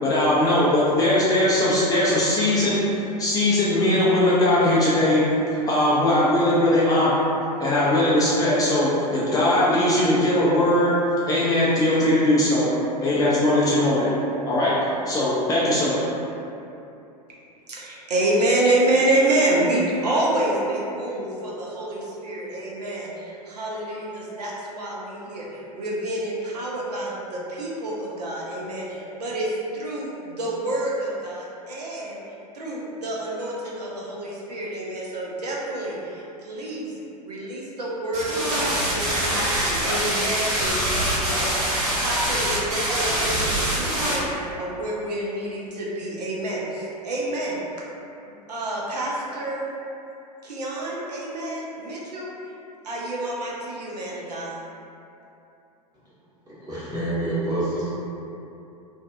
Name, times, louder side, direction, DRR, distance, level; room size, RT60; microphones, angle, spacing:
voice 1, 0.0-2.8 3.2-5.2 5.5-7.2 7.6-10.9 11.3-12.7 13.0-14.1 14.5-14.7 15.1-16.0, left 1 dB, 15° left, -8 dB, 0.4 m, -20 dB
voice 2, 17.7-32.2 32.5-36.9 37.2-44.3 44.6-47.6 48.5-49.7 50.4-52.5 52.8-54.6, right 1 dB, 75° right, -5 dB, 0.5 m, -28 dB
sound 1, 38.1-44.2, right 1 dB, 50° right, 1.1 m, -24 dB
voice 3, 56.4-57.9, right 1 dB, 20° right, -10 dB, 0.9 m, -27 dB
2.5 x 2.2 x 2.3 m, 2.8 s
figure-of-eight pair, 95°, 21 cm